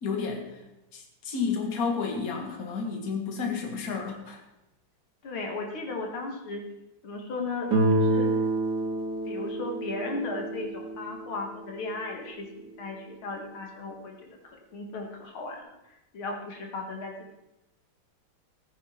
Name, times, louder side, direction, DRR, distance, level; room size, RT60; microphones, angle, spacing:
voice 1, 0.0-0.6 0.9-4.4, left 5 dB, 45° left, 2 dB, 2.3 m, -31 dB
voice 2, 5.2-6.7 7.0-8.3 9.3-17.3, left 3 dB, 75° left, 2 dB, 2.7 m, -36 dB
Guitar, 7.7-12.5, right 2 dB, 50° right, 2.8 m, -28 dB
17.5 x 9.9 x 4.5 m, 0.99 s
omnidirectional pair, 2.3 m